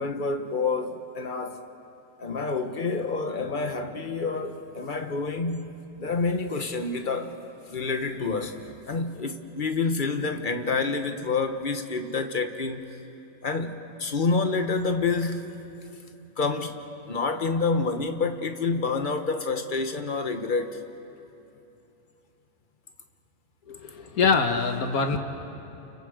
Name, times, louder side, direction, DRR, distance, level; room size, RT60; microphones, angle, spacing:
voice 1, 0.0-1.6 2.2-7.4 7.7-8.6 8.9-12.9 13.4-15.5 16.4-20.8, left 4 dB, 35° left, 6 dB, 1.4 m, -28 dB
voice 2, 23.7-25.2, left 5 dB, 85° left, 6 dB, 1.9 m, -24 dB
30.0 x 29.0 x 5.1 m, 2.9 s
omnidirectional pair, 1.5 m